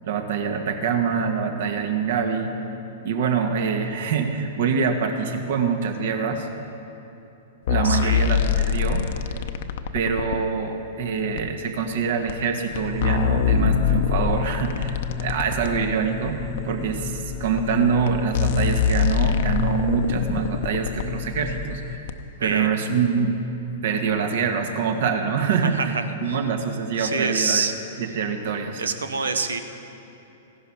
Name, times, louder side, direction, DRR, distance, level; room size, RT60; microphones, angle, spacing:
voice 1, 0.0-2.5 3.0-6.5 7.7-8.4 8.7-9.1 9.9-16.4 16.6-22.1 22.4-23.3 23.8-26.0 26.2-27.7 28.0-28.8, right 6 dB, 65° right, 5 dB, 1.4 m, -25 dB
sound 1, 7.7-10.4 11.4-11.5 12.3-12.4 12.8-15.7 16.6-16.7 17.6-17.7 18.1-18.2 18.3-21.1 22.1-22.2, left 8 dB, 65° left, 0.7 m, -23 dB
voice 2, 7.8-8.2 22.4-22.7 25.8-26.4 27.0-27.7 28.8-29.6, right 4 dB, 85° right, 8 dB, 1.0 m, -26 dB
sound 2, 12.7-22.0, left 4 dB, 25° left, 0.6 m, -32 dB
16.0 x 11.0 x 5.6 m, 2.9 s
hypercardioid pair, 115°, 0 cm